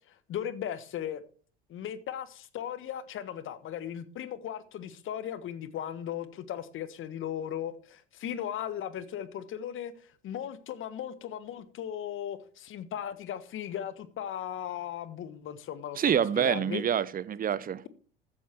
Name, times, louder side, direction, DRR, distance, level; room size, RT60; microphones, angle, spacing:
voice 1, 0.3-1.2 1.7-9.9 10.2-16.8, left 10 dB, 45° left, 1.4 m, -37 dB
voice 2, 16.0-17.9, right 9 dB, 30° right, 0.8 m, -27 dB
14.0 x 9.1 x 4.6 m
figure-of-eight pair, 65°, 29 cm